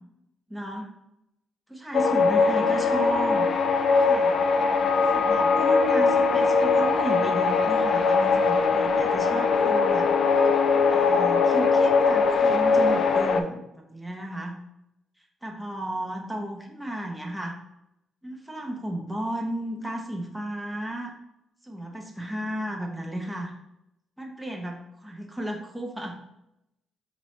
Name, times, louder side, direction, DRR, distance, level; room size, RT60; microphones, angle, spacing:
voice 1, 0.5-0.9 1.7-3.5 4.0-4.5 5.1-10.1 10.9-14.6 15.4-17.6 18.2-21.1 21.6-23.5 24.2-26.2, right 1 dB, 5° right, 0 dB, 0.6 m, -34 dB
sound 1, 1.9-13.4, left 4 dB, 60° left, 0.3 m, -21 dB
4.3 x 3.1 x 3.1 m, 0.85 s
cardioid pair, 90°, 0 cm